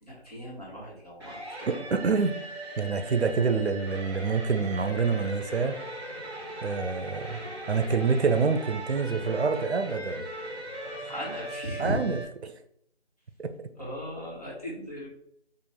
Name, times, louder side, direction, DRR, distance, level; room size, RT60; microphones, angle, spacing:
voice 1, 0.0-1.8 11.0-12.0 13.8-15.1, equal, 35° left, -5 dB, 1.3 m, -37 dB
sound 1, 1.2-12.2, right 1 dB, 20° right, 1.3 m, -39 dB
voice 2, 1.7-2.4 2.8-5.8 6.6-7.4 7.7-10.3 11.8-12.5 13.4-13.5, right 5 dB, 70° right, 8 dB, 0.6 m, -27 dB
5.2 x 2.5 x 3.5 m, 0.70 s
figure-of-eight pair, 180°, 33 cm